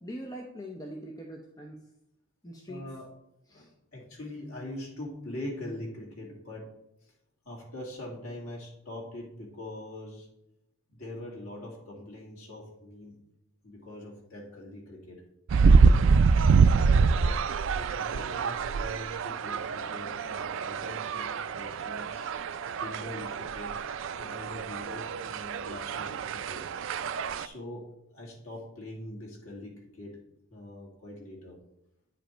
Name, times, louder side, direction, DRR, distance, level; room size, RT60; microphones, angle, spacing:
voice 1, 0.0-1.8 2.4-2.8 3.5-3.7, equal, 15° left, 0 dB, 0.7 m, -42 dB
voice 2, 2.7-3.1 3.5-6.7 7.0-7.1 7.4-10.3 10.9-13.1 13.6-15.2 16.9-17.3 17.7-22.3 22.8-23.7 24.1-26.6 27.4-27.9 28.1-30.2 30.5-31.6, left 1 dB, 75° left, -2 dB, 2.5 m, -42 dB
sound 1, 15.5-27.5, right 5 dB, 60° right, 0.3 m, -25 dB
9.2 x 5.1 x 4.5 m, 0.82 s
head